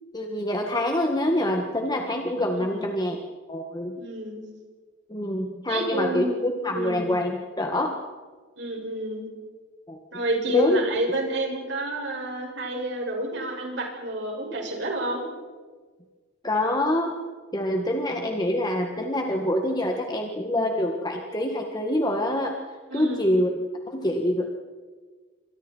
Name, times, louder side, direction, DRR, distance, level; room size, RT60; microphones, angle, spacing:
voice 1, 0.1-3.2 3.5-4.0 5.1-8.0 9.9-10.0 10.5-10.8 16.4-17.1 17.5-22.6 22.9-24.5, left 1 dB, 20° left, 2 dB, 1.8 m, -26 dB
voice 2, 2.5-2.9 3.9-4.4 5.7-6.3 6.7-7.1 8.6-9.3 10.1-15.2 22.9-23.4, right 1 dB, 60° right, 1 dB, 6.5 m, -29 dB
28.5 x 25.5 x 4.6 m, 1.4 s
head